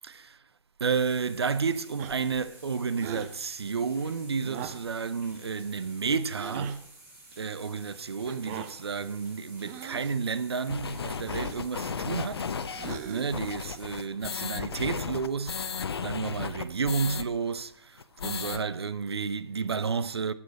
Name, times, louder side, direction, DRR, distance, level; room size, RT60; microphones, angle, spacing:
voice 1, 0.0-0.4 0.8-6.8 7.4-12.5 13.0-15.7 16.0-20.3, right 5 dB, 75° right, 0.8 m, -31 dB
sound 1, 0.9-14.1, right 2 dB, 15° right, 6.3 m, -52 dB
sound 2, 2.0-2.4 3.0-3.4 4.4-4.9 6.4-6.8 8.3-8.8 9.6-10.2 11.2-11.7 12.7-13.4, right 9 dB, 40° right, 1.2 m, -40 dB
sound 3, 10.7-17.3 17.6-17.7 18.0-18.6, left 6 dB, 70° left, 0.8 m, -34 dB
12.5 x 7.4 x 6.5 m
figure-of-eight pair, 115°, 14 cm